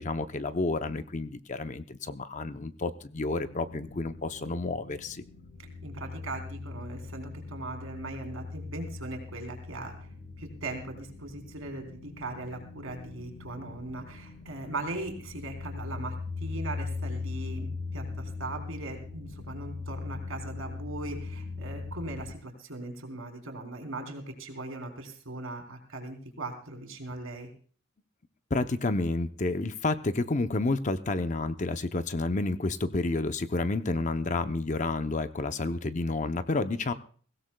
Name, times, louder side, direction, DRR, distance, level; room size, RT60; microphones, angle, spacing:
voice 1, 0.0-5.2 28.5-36.9, left 2 dB, 35° left, 10 dB, 0.6 m, -30 dB
sound 1, 3.4-22.3, left 4 dB, 75° left, 4.7 m, -40 dB
voice 2, 5.6-10.1 10.4-27.5, right 2 dB, 75° right, 4 dB, 3.6 m, -39 dB
22.5 x 16.5 x 2.3 m, 0.44 s
head